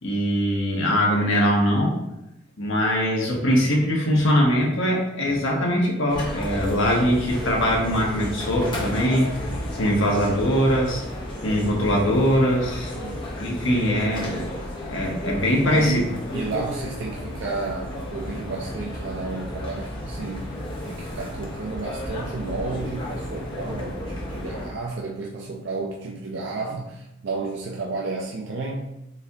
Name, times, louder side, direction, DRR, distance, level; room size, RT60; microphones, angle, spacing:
voice 1, 0.0-2.0 2.6-9.2 9.8-11.0 11.4-12.9 13.4-14.5 14.9-16.0, equal, 65° left, -1 dB, 0.9 m, -22 dB
sound 1, 6.1-24.7, left 1 dB, 25° left, 0.7 m, -33 dB
voice 2, 13.0-13.4 15.6-28.9, right 3 dB, 60° right, -1 dB, 0.4 m, -32 dB
4.3 x 2.7 x 3.4 m, 0.89 s
head